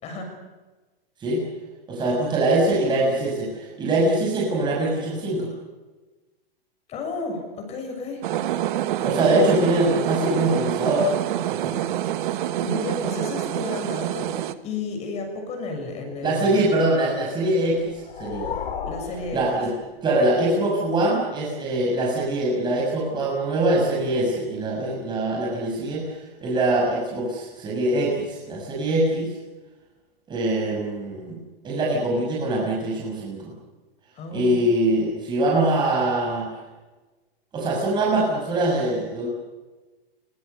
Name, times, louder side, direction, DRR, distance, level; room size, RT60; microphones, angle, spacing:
voice 1, 0.0-0.4 6.9-8.2 12.3-16.6 18.9-19.4 34.2-34.6, left 3 dB, 20° left, 4 dB, 6.8 m, -32 dB
voice 2, 1.9-5.5 9.0-11.1 11.5-11.7 16.2-18.5 19.3-19.7 20.0-29.3 30.3-31.4 31.6-33.5 34.3-36.5 37.5-39.3, right 1 dB, 15° right, -3 dB, 6.4 m, -23 dB
sound 1, 8.2-14.5, right 12 dB, 55° right, 1.5 m, -26 dB
sound 2, 17.7-20.3, left 7 dB, 75° left, 4.4 m, -34 dB
25.0 x 24.0 x 6.9 m, 1.2 s
hypercardioid pair, 160°, 30 cm